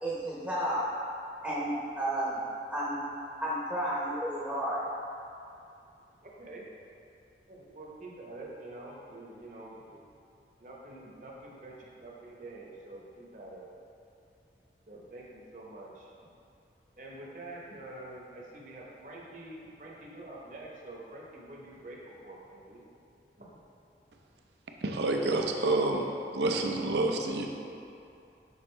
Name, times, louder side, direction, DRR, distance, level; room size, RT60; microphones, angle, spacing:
voice 1, 0.0-0.9 1.4-2.4 2.7-3.0 3.4-4.8, right 1 dB, 5° right, -7 dB, 0.7 m, -32 dB
voice 2, 6.2-6.7 7.5-10.0 10.6-13.7 14.9-16.1 17.0-22.8 23.4-23.5, right 2 dB, 45° right, -3 dB, 0.9 m, -46 dB
voice 3, 24.8-26.1 26.3-27.5, right 2 dB, 80° right, 2 dB, 0.6 m, -28 dB
6.4 x 5.0 x 3.2 m, 2.6 s
head